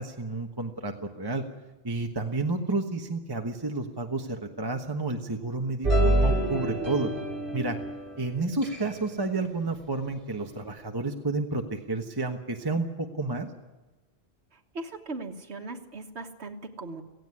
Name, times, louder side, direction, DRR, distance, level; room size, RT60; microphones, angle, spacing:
voice 1, 0.0-1.4 1.8-7.1 7.5-7.8 8.2-13.5, right 3 dB, 20° right, 4 dB, 1.3 m, -30 dB
sound 1, 5.8-8.2 8.6-8.9, right 1 dB, 55° right, 3.9 m, -26 dB
voice 2, 14.5-17.0, right 3 dB, 80° right, 2 dB, 1.7 m, -39 dB
17.5 x 16.0 x 9.7 m, 1.1 s
omnidirectional pair, 1.1 m